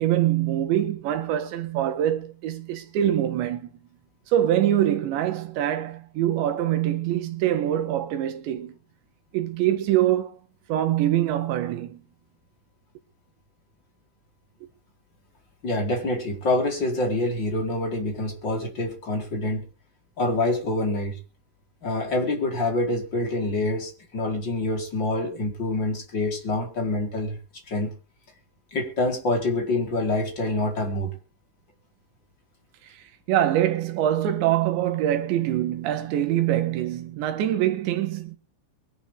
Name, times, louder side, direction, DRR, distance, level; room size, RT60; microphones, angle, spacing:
voice 1, 0.0-3.7 4.3-8.8 9.3-10.4 10.7-12.0 32.9-38.4, right 12 dB, 75° right, 3.8 m, -24 dB
voice 2, 15.6-19.6 20.2-21.2 21.8-27.4 27.7-27.9 28.7-31.1, left 2 dB, 25° left, 4.4 m, -26 dB
23.0 x 11.0 x 3.7 m
omnidirectional pair, 5.4 m